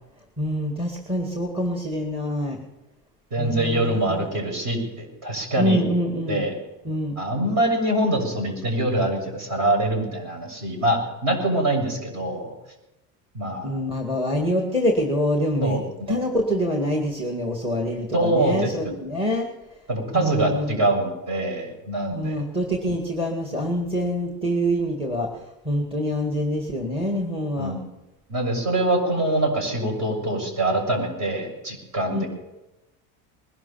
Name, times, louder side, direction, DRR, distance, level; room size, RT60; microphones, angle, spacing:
voice 1, 0.4-2.6 3.4-4.3 5.6-6.5 6.8-7.2 13.6-15.8 16.1-19.5 20.1-20.8 22.1-27.7 32.1-32.2, equal, 15° right, 2 dB, 2.0 m, -25 dB
voice 2, 3.3-5.8 6.3-6.5 7.2-12.5 13.3-13.8 15.6-15.8 16.1-16.2 18.1-18.9 19.9-22.4 27.6-27.9 28.3-32.3, right 1 dB, 45° right, 2 dB, 7.2 m, -24 dB
21.0 x 12.0 x 5.8 m, 0.99 s
cardioid pair, 145°, 41 cm